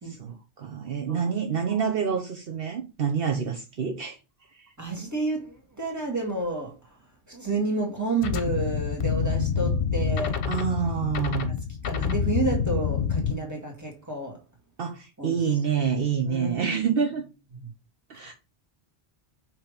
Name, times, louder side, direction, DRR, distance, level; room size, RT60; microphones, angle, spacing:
voice 1, 0.0-4.2 4.5-4.7 10.5-11.5 14.8-17.2 18.1-18.3, right 7 dB, 60° right, 0.9 m, -27 dB
voice 2, 4.8-6.7 7.3-10.4 11.9-14.4 15.2-15.3 16.3-16.8, right 3 dB, 15° right, 2.0 m, -30 dB
sound 1, 8.2-13.3, left 6 dB, 65° left, 0.9 m, -27 dB
5.6 x 3.3 x 5.1 m
omnidirectional pair, 1.1 m